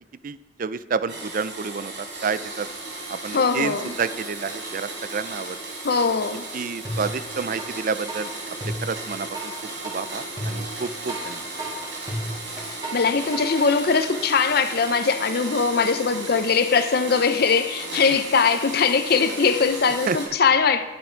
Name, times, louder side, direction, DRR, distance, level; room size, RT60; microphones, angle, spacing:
voice 1, 0.2-2.7 3.1-5.6 6.5-8.3 8.8-9.5 9.8-11.4 18.1-18.2 20.1-20.2, right 5 dB, 50° right, 0.5 m, -29 dB
Domestic sounds home sounds, 1.1-20.3, right 2 dB, 90° right, 4.1 m, -35 dB
voice 2, 3.3-3.9 5.8-6.4 12.9-20.8, left 5 dB, 55° left, 0.6 m, -21 dB
sound 1, 6.8-7.7 8.1-13.7, right 1 dB, 20° right, 2.3 m, -33 dB
12.0 x 10.5 x 4.5 m
head